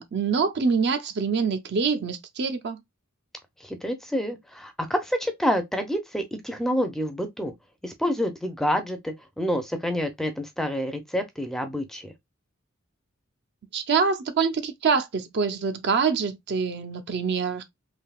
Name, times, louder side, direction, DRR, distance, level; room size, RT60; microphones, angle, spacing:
voice 1, 0.0-2.8 13.7-17.6, right 5 dB, 55° right, 0.5 m, -25 dB
voice 2, 3.6-7.5 7.8-12.1, equal, ahead, 0.4 m, -28 dB
3.3 x 2.7 x 2.3 m
head